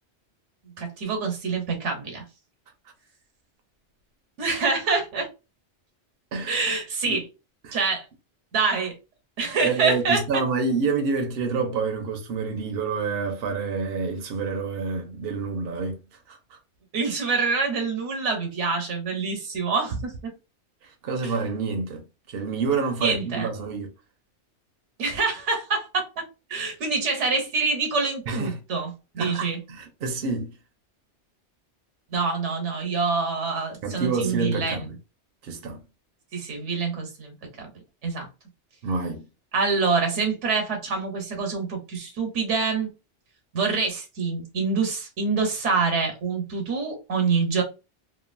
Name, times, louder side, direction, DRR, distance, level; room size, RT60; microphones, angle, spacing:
voice 1, 0.8-2.2 4.4-5.3 6.5-7.3 7.7-8.0 8.5-9.0 9.4-10.2 16.9-20.3 21.2-21.3 23.0-23.5 25.0-26.1 26.5-29.6 32.1-34.9 36.3-37.7 38.0-38.3 39.5-42.9 43.5-47.6, right 4 dB, 85° right, 1.2 m, -26 dB
voice 2, 6.3-6.6 7.0-7.2 7.6-7.8 9.6-16.0 16.3-16.6 20.8-22.0 22.3-23.9 28.3-28.6 29.2-30.5 33.8-35.0 35.4-35.8 38.8-39.2, right 4 dB, 65° right, 0.8 m, -28 dB
2.9 x 2.4 x 2.5 m
omnidirectional pair, 1.2 m